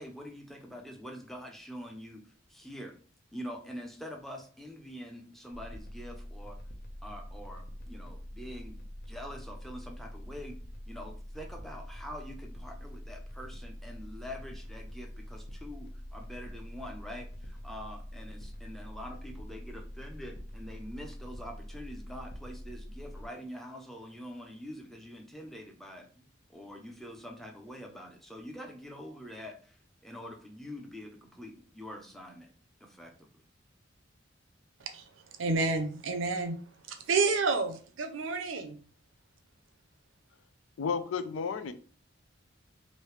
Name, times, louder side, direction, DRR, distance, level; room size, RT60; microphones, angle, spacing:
voice 1, 0.0-2.2 2.5-3.0 3.3-6.6 7.0-10.6 10.9-26.2 26.5-29.8 30.0-32.5 32.8-33.3, equal, ahead, 0.6 m, -45 dB
sound 1, 5.5-23.3, equal, 55° left, 0.7 m, -44 dB
voice 2, 35.4-36.6 36.9-38.8, right 4 dB, 75° right, 0.6 m, -30 dB
voice 3, 40.8-41.7, left 6 dB, 85° left, 0.4 m, -32 dB
3.2 x 2.7 x 3.2 m
head